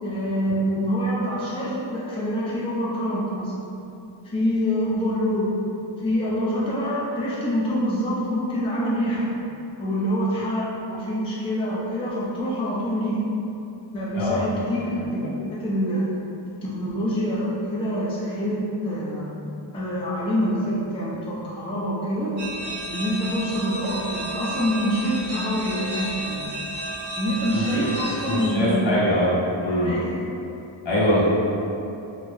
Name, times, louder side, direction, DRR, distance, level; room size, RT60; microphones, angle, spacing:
voice 1, 0.0-3.5 4.2-5.5 6.0-9.3 9.8-13.2 13.9-16.0 16.6-19.3 19.7-22.3 22.9-26.4 27.2-29.3 29.8-30.1, equal, 10° left, -7 dB, 0.4 m, -26 dB
sound 1, 22.4-28.5, right 1 dB, 65° right, 0.7 m, -32 dB
voice 2, 27.5-27.9 28.2-29.4 29.6-30.0 30.8-31.2, left 1 dB, 60° left, -9 dB, 1.1 m, -23 dB
3.6 x 2.0 x 3.2 m, 2.8 s
wide cardioid pair, 110°, 49 cm